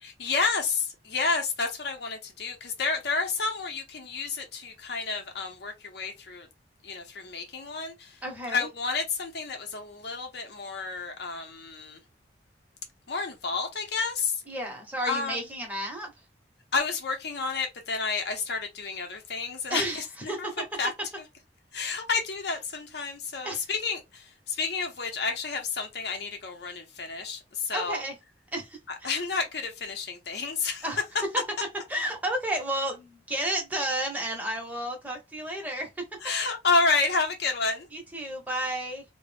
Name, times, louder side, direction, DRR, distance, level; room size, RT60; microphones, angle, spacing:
voice 1, 0.0-6.5 6.8-8.2 8.5-12.0 13.1-14.4 15.1-15.4 16.7-20.5 20.8-20.9 21.7-28.0 29.0-30.8 36.2-37.9, left 4 dB, 65° left, 0.7 m, -30 dB
voice 2, 8.2-8.7 14.5-16.1 19.7-20.0 20.3-20.5 23.4-23.6 27.7-28.1 28.5-29.2 30.8-31.0 31.9-35.9 37.9-39.0, right 1 dB, 10° right, 0.8 m, -32 dB
2.3 x 2.1 x 3.3 m
head